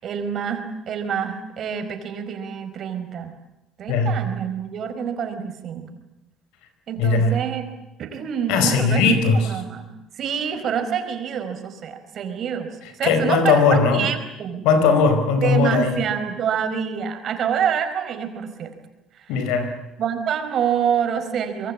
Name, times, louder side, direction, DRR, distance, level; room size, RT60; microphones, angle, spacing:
voice 1, 0.0-3.4 3.8-5.9 6.9-7.6 8.0-9.9 10.1-12.7 12.9-14.6 15.3-18.7 19.1-19.3 20.0-21.7, right 8 dB, 55° right, 7 dB, 4.7 m, -26 dB
voice 2, 7.0-7.3 8.5-9.5 13.0-14.1 14.6-15.9 19.3-19.7, left 4 dB, 85° left, 9 dB, 4.8 m, -18 dB
25.5 x 23.0 x 8.7 m, 0.96 s
cardioid pair, 95°, 0 cm